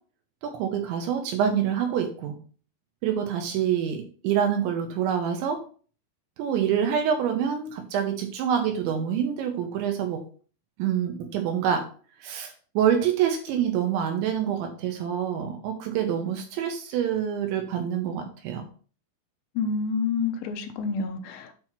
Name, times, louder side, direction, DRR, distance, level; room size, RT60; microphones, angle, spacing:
voice 1, 0.4-2.4 3.0-5.6 6.4-10.2 10.8-11.9 12.2-18.6, right 8 dB, 75° right, 4 dB, 3.0 m, -26 dB
voice 2, 19.6-21.5, left 5 dB, 90° left, 7 dB, 3.7 m, -28 dB
8.9 x 3.1 x 5.8 m, 0.40 s
omnidirectional pair, 5.9 m